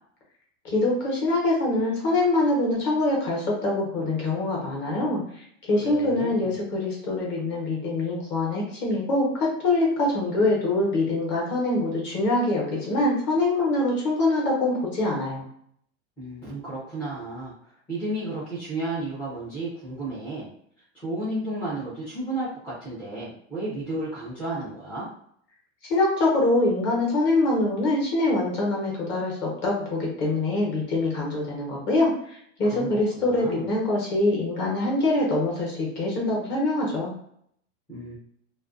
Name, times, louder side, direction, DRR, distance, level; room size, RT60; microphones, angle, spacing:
voice 1, 0.6-15.4 25.9-37.1, left 2 dB, 30° left, -3 dB, 0.9 m, -24 dB
voice 2, 5.8-6.5 16.2-17.5 17.9-20.5 21.0-25.1 32.6-33.6 37.9-38.2, right 2 dB, 5° left, -11 dB, 0.4 m, -33 dB
2.4 x 2.2 x 2.4 m, 0.67 s
supercardioid pair, 155°, 36 cm